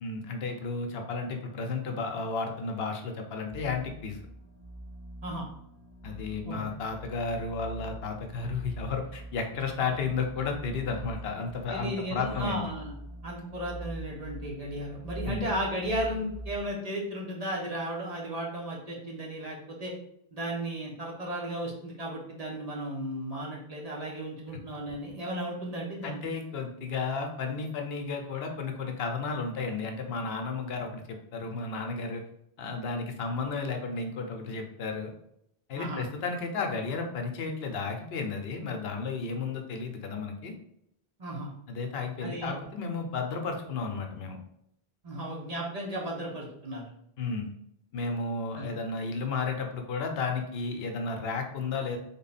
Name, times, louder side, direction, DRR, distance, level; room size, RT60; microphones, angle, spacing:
voice 1, 0.0-4.2 6.0-12.6 15.3-15.5 26.0-32.2 32.6-35.1 35.7-40.5 41.7-44.4 47.2-47.5 47.9-52.0, left 4 dB, 75° left, 3 dB, 0.8 m, -33 dB
sound 1, 3.5-16.6, right 1 dB, 15° right, 1.3 m, -44 dB
voice 2, 11.7-12.9 13.2-19.9 20.3-26.2 35.8-36.0 41.2-41.5 42.2-42.5 45.0-46.9 48.5-48.7, right 1 dB, 45° right, -2 dB, 0.7 m, -35 dB
3.4 x 2.2 x 4.0 m, 0.74 s
omnidirectional pair, 1.1 m